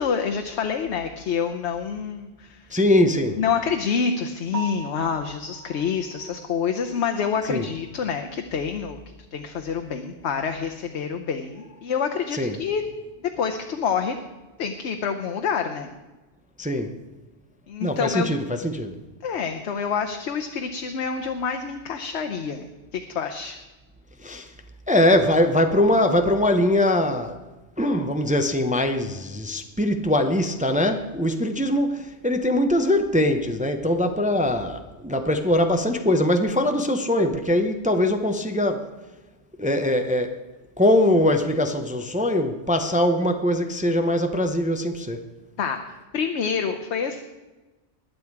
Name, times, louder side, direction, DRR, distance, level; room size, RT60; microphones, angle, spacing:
voice 1, 0.0-2.8 3.4-12.8 13.2-14.2 14.6-15.9 17.7-18.4 19.2-23.6 45.6-47.2, left 6 dB, 70° left, 1.1 m, -27 dB
voice 2, 2.7-3.4 7.5-7.7 12.3-12.6 16.6-16.9 17.8-19.0 24.2-24.5 24.9-27.4 27.8-38.9 39.6-40.3 40.8-45.2, left 1 dB, 10° right, 0.6 m, -22 dB
Piano, 4.5-8.5 8.9-9.0 9.5-9.6 9.9-10.0 13.1-13.2 21.7-21.9, right 4 dB, 60° right, 1.6 m, -42 dB
20.5 x 7.8 x 4.7 m
omnidirectional pair, 1.2 m